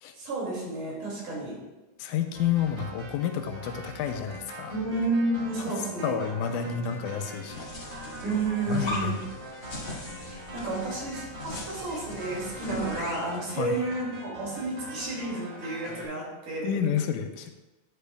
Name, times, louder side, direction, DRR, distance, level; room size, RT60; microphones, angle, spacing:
voice 1, 0.2-1.6 4.7-6.2 8.2-9.2 10.2-16.8, right 2 dB, 80° right, -4 dB, 4.0 m, -31 dB
voice 2, 2.0-4.7 5.6-5.7 6.0-7.7 8.7-9.3 13.6-13.7 16.6-17.5, left 8 dB, 85° left, 6 dB, 2.1 m, -30 dB
sound 1, 2.3-16.1, right 1 dB, 40° right, 2.1 m, -43 dB
sound 2, 7.5-13.3, left 2 dB, 45° left, 2.6 m, -39 dB
10.0 x 8.2 x 2.4 m, 1.1 s
omnidirectional pair, 3.6 m